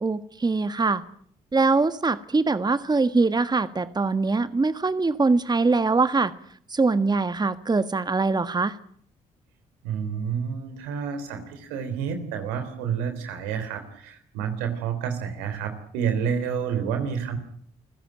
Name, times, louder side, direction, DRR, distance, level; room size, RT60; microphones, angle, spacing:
voice 1, 0.0-1.0 1.5-6.3 6.7-8.8, right 3 dB, 25° right, 13 dB, 1.5 m, -23 dB
voice 2, 9.8-17.4, right 7 dB, 85° right, 8 dB, 3.5 m, -29 dB
28.5 x 16.0 x 9.1 m, 0.65 s
hypercardioid pair, 45°, 16 cm